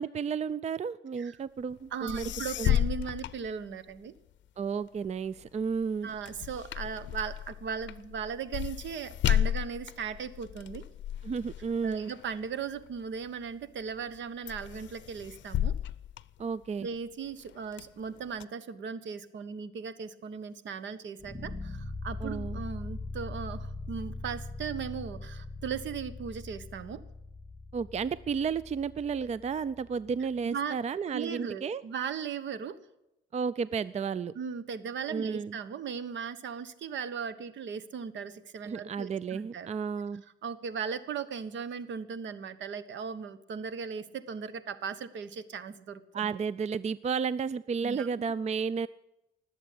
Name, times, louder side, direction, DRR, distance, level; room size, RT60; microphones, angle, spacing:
voice 1, 0.0-2.3 2.6-2.8 4.6-6.1 11.2-12.1 16.4-16.9 22.2-22.6 27.7-31.8 33.3-34.3 35.1-35.6 38.6-40.2 46.1-48.9, right 6 dB, 35° right, 18 dB, 0.5 m, -32 dB
sound 1, 1.8-1.9 2.1-4.2 4.6-13.3 13.8-14.2 14.5-17.0 17.4-18.4, left 11 dB, 70° left, 0.6 m, -33 dB
voice 2, 1.9-4.1 6.0-10.8 11.8-15.7 16.8-27.0 30.4-30.8 31.1-32.8 34.3-39.7 40.4-46.3 47.8-48.1, right 6 dB, 70° right, 15 dB, 1.3 m, -37 dB
sound 2, 21.2-30.3, left 2 dB, 10° left, 3.0 m, -41 dB
19.5 x 8.0 x 8.6 m, 0.87 s
cardioid pair, 90°, 20 cm